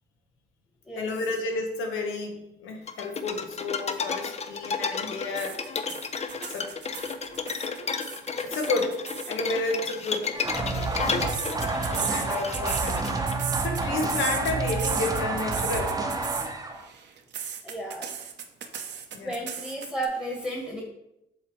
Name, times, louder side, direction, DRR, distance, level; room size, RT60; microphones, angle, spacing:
voice 1, 0.9-5.6 6.5-6.7 8.4-9.0 9.3-10.9 12.1-13.1 13.6-16.0 19.1-19.3, left 3 dB, 85° left, 3 dB, 1.2 m, -31 dB
sound 1, 2.9-13.3, left 5 dB, 35° left, 0.6 m, -32 dB
sound 2, 5.4-9.4 10.4-16.5 16.8-20.1, right 8 dB, 60° right, 0.8 m, -35 dB
sound 3, 10.3-16.9, right 3 dB, 15° right, 0.8 m, -29 dB
voice 2, 17.6-18.1 19.2-20.8, right 1 dB, 10° left, -1 dB, 1.4 m, -33 dB
7.6 x 3.2 x 4.6 m, 0.85 s
cardioid pair, 90°, 20 cm